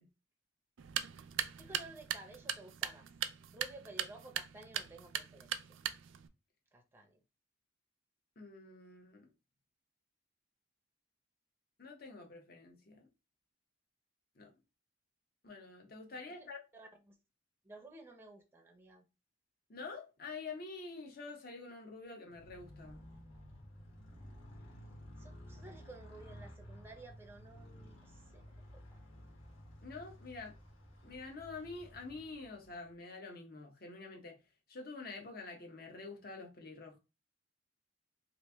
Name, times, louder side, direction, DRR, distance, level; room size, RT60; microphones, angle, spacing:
sound 1, 0.8-6.3, right 10 dB, 70° right, 0.3 m, -40 dB
voice 1, 1.6-3.1 3.5-5.8 6.7-7.2 16.3-16.5 16.7-17.2 17.6-19.0 25.2-29.0, right 2 dB, 10° right, 0.5 m, -54 dB
voice 2, 8.4-9.3 11.8-13.1 14.4-14.5 15.4-16.6 19.7-23.0 29.8-30.5 31.0-34.4 34.7-37.0, left 3 dB, 50° left, 0.8 m, -47 dB
Motorcycle, 22.3-32.9, equal, 75° left, 1.2 m, -54 dB
3.0 x 2.5 x 3.4 m
head